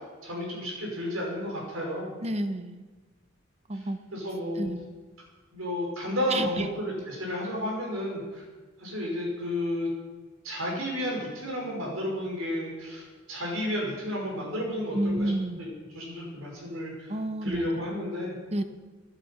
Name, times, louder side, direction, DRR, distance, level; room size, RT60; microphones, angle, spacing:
voice 1, 0.2-2.1 4.1-4.8 5.5-8.4 8.8-9.9 10.4-15.3 15.6-17.1 17.4-18.4, left 1 dB, 90° right, -1 dB, 5.4 m, -32 dB
voice 2, 2.2-2.8 3.7-4.0 4.6-4.9 6.3-6.7 14.9-15.6 17.1-17.7 18.5-18.6, right 1 dB, 30° right, 9 dB, 0.9 m, -30 dB
16.0 x 9.9 x 6.0 m, 1.3 s
head